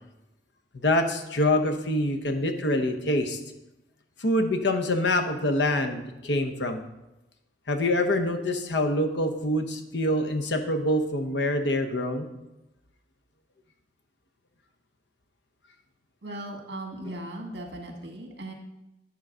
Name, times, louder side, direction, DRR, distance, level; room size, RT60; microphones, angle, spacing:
voice 1, 0.7-3.4 4.2-6.8 7.7-12.3 17.0-17.1, left 1 dB, 80° left, 6 dB, 0.9 m, -25 dB
voice 2, 16.2-18.5, right 1 dB, 70° right, 1 dB, 1.7 m, -38 dB
10.5 x 3.9 x 6.1 m, 0.95 s
head